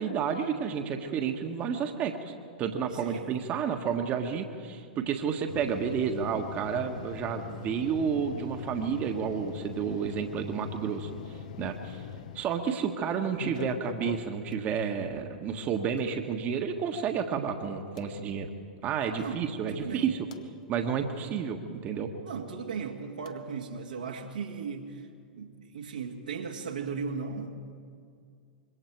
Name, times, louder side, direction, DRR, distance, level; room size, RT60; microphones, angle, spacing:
voice 1, 0.0-2.3 2.6-12.0 12.3-18.5 18.8-20.2 20.7-22.1, right 7 dB, 35° right, 4 dB, 1.5 m, -31 dB
sound 1, 5.5-12.5 13.3-14.5 16.0-16.1 18.0-18.1 19.9-20.4 23.2-23.3, left 8 dB, 60° left, 1.1 m, -42 dB
voice 2, 19.7-20.1 22.2-25.1 25.3-27.7, right 5 dB, 75° right, 2 dB, 2.0 m, -37 dB
26.0 x 23.0 x 4.7 m, 2.2 s
figure-of-eight pair, 95°, 4 cm